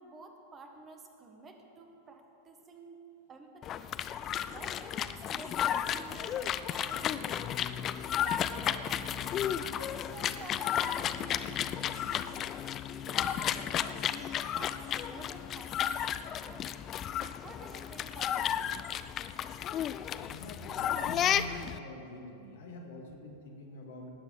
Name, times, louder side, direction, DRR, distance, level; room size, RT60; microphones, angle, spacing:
voice 1, 0.0-3.0 3.3-3.9 4.4-6.4 6.7-7.8 8.5-12.4 12.9-16.7 17.4-18.8, right 3 dB, 25° right, 4 dB, 1.4 m, -51 dB
sound 1, 3.6-21.8, left 10 dB, 30° left, 0.4 m, -33 dB
voice 2, 20.2-24.1, left 2 dB, 60° left, 1 dB, 2.0 m, -45 dB
18.5 x 8.0 x 5.2 m, 3.0 s
figure-of-eight pair, 90°, 0 cm